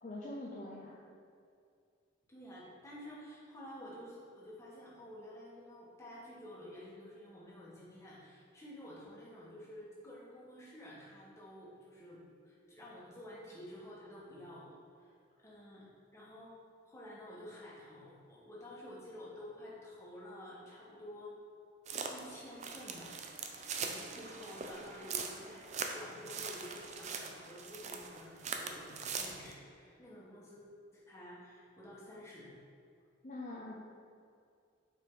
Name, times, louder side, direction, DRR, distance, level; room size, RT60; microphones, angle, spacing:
voice 1, 0.0-1.0 33.2-33.8, left 2 dB, 35° left, -4 dB, 0.6 m, -44 dB
voice 2, 2.3-15.1 15.4-15.9 16.1-16.5 16.9-21.4 22.1-23.5 23.8-30.6 30.9-32.6, left 1 dB, 15° left, -7 dB, 1.5 m, -51 dB
sound 1, 21.9-29.5, right 5 dB, 35° right, 0.4 m, -42 dB
7.5 x 5.0 x 3.9 m, 2.3 s
head